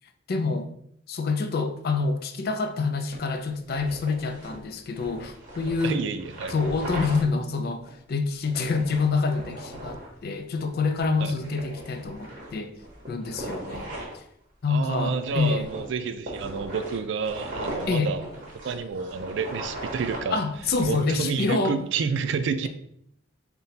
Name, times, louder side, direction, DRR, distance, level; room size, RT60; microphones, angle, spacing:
voice 1, 0.3-0.7 1.1-6.0 6.5-7.8 8.1-12.7 13.1-13.9 14.6-15.7 17.9-18.1 20.3-21.8, left 4 dB, 55° left, 0.4 m, -27 dB
sound 1, 3.1-7.2 7.9-8.0 8.4-10.1 10.6-10.7 11.0-11.1 11.4-14.2 14.9-21.2, right 1 dB, 45° right, 1.1 m, -38 dB
voice 2, 5.8-6.5 11.2-11.4 14.7-18.2 18.6-20.4 20.8-22.7, right 5 dB, 70° right, 0.3 m, -29 dB
4.0 x 2.2 x 3.9 m
head